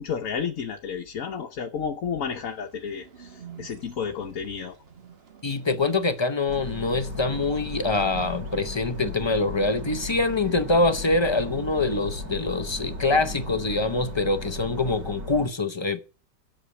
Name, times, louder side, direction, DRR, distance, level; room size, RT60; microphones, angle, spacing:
voice 1, 0.0-4.7, left 6 dB, 55° left, 1.2 m, -31 dB
Bird, 2.4-14.5, right 6 dB, 40° right, 1.3 m, -47 dB
voice 2, 5.4-16.0, left 3 dB, 35° left, 0.4 m, -25 dB
sound 1, 6.5-15.5, left 1 dB, 60° right, 2.6 m, -36 dB
8.3 x 6.7 x 8.3 m
omnidirectional pair, 1.8 m